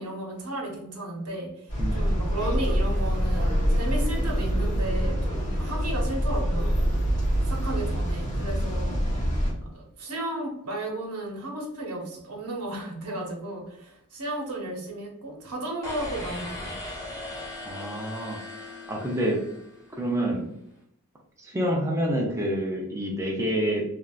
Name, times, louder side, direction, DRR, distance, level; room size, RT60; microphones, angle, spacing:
voice 1, 0.0-6.8 7.5-9.0 9.6-16.8, right 1 dB, 80° right, 0 dB, 0.9 m, -34 dB
sound 1, 1.7-9.5, equal, 35° left, 1.0 m, -25 dB
sound 2, 15.8-20.0, left 2 dB, 15° left, 0.7 m, -39 dB
voice 2, 17.6-18.4 18.9-19.4 20.0-20.5 21.4-23.8, equal, 15° right, -1 dB, 0.4 m, -27 dB
3.3 x 2.5 x 2.3 m, 0.76 s
head